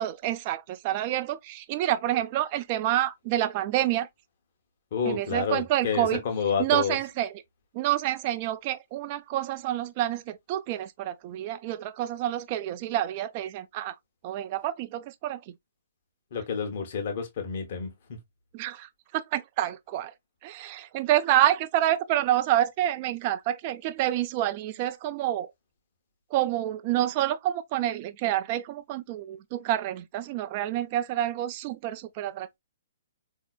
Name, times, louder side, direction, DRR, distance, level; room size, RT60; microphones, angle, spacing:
voice 1, 0.0-4.1 5.0-6.2 6.6-7.4 7.7-13.9 14.2-15.4 18.5-20.1 20.4-25.5 26.3-32.6, right 13 dB, 35° right, 0.3 m, -28 dB
voice 2, 4.9-7.0 16.3-18.2, left 6 dB, 50° left, 1.0 m, -29 dB
3.9 x 2.8 x 2.3 m
figure-of-eight pair, 125°, 0 cm